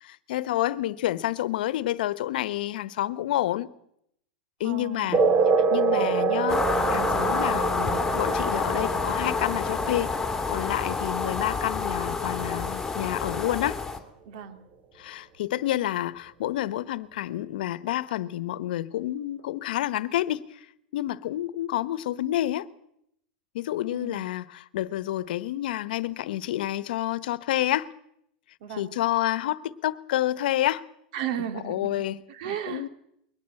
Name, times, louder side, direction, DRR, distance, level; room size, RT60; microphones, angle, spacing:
voice 1, 0.0-3.7 4.6-5.2 5.7-10.1 10.5-13.8 15.0-20.6 20.9-22.7 23.5-27.9 28.8-30.9 31.6-32.9, left 14 dB, 75° left, 1.1 m, -29 dB
voice 2, 4.6-5.1 14.2-14.6 23.9-24.2 28.6-28.9 31.1-31.9 32.3-32.9, right 10 dB, 65° right, 2.8 m, -34 dB
sound 1, 5.1-12.1, right 4 dB, 35° right, 2.4 m, -27 dB
sound 2, 6.5-14.0, left 4 dB, 10° left, 2.8 m, -28 dB
22.0 x 18.5 x 7.7 m
supercardioid pair, 125°, 5 cm